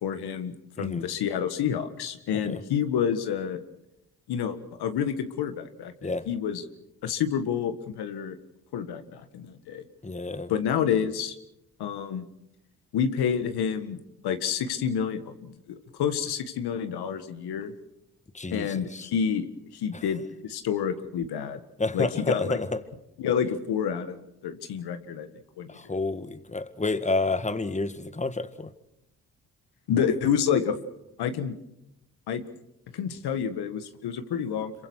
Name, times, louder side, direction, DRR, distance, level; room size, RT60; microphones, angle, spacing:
voice 1, 0.0-3.6 4.3-6.6 7.0-8.4 8.7-9.8 10.5-11.4 11.8-12.3 12.9-14.0 14.2-17.7 18.5-19.5 19.7-21.6 21.9-22.6 23.2-24.2 24.4-25.3 25.6-25.7 29.9-30.8 31.2-31.5 32.3-32.4 32.9-34.7, left 8 dB, 75° left, 1.8 m, -28 dB
voice 2, 10.0-10.5 18.3-19.1 19.9-20.1 21.8-22.8 25.7-28.7, left 3 dB, 20° left, 1.8 m, -29 dB
26.5 x 23.5 x 6.5 m
supercardioid pair, 50°, 39 cm